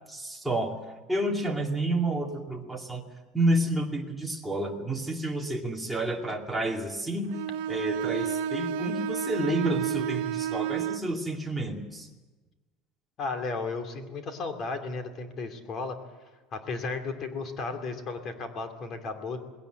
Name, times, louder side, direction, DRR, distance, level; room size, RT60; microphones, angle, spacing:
voice 1, 0.1-3.0 3.3-7.3 7.7-12.1, right 1 dB, ahead, -1 dB, 2.4 m, -30 dB
Bowed string instrument, 7.3-11.1, right 9 dB, 80° right, 0.7 m, -31 dB
voice 2, 13.2-16.0 16.5-19.4, left 3 dB, 35° left, 6 dB, 2.7 m, -34 dB
20.5 x 17.5 x 8.1 m, 1.2 s
cardioid pair, 165°, 0 cm